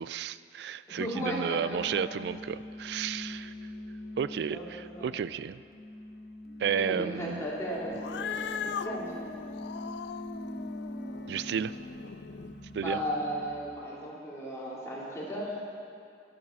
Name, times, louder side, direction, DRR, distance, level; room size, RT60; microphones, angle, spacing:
voice 1, 0.0-3.5 4.2-5.6 6.6-7.4 11.3-11.8 12.7-13.0, right 7 dB, 70° right, 16 dB, 0.3 m, -32 dB
voice 2, 0.9-2.1 4.5-5.1 6.7-9.3 12.8-15.5, equal, 15° left, -7 dB, 2.7 m, -36 dB
sound 1, 1.7-13.5, left 1 dB, 55° left, 1.2 m, -43 dB
Cat, 7.9-12.5, left 7 dB, 75° left, 0.4 m, -39 dB
11.0 x 8.7 x 7.0 m, 2.5 s
head